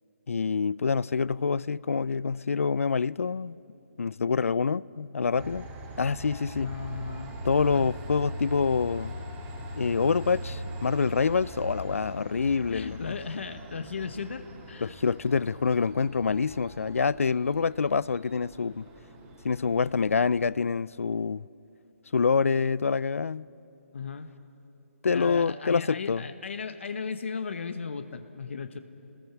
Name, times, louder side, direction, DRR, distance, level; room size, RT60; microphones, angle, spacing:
voice 1, 0.3-3.6 4.0-5.7 6.0-6.8 7.4-9.1 9.8-13.0 14.8-18.9 19.4-21.4 22.1-23.5 25.0-26.2, left 5 dB, 80° left, 0.4 m, -26 dB
Train, 5.3-20.5, equal, 15° right, 2.0 m, -41 dB
voice 2, 6.6-7.4 7.7-7.9 12.7-15.0 23.9-24.3 25.1-28.8, left 5 dB, 60° left, 1.1 m, -36 dB
29.5 x 20.5 x 6.0 m
hypercardioid pair, 160°, 7 cm